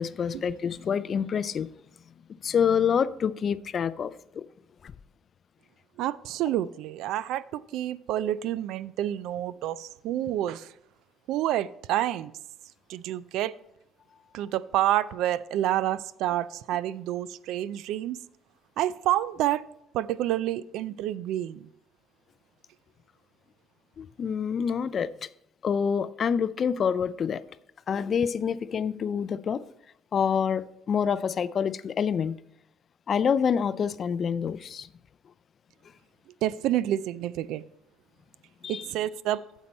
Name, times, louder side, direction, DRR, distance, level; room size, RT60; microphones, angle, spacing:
voice 1, 0.0-1.7 2.4-4.1 4.4-4.5 8.2-8.3 24.0-25.1 25.6-27.4 27.9-29.6 30.1-32.4 33.1-34.9 38.6-38.9, left 7 dB, 35° left, 0.3 m, -27 dB
voice 2, 6.0-10.7 11.3-12.3 12.9-13.5 14.3-18.2 18.8-19.6 19.9-21.7 36.4-37.6 38.7-39.4, right 13 dB, 70° right, 0.3 m, -28 dB
9.5 x 7.2 x 4.2 m
cardioid pair, 155°, 0 cm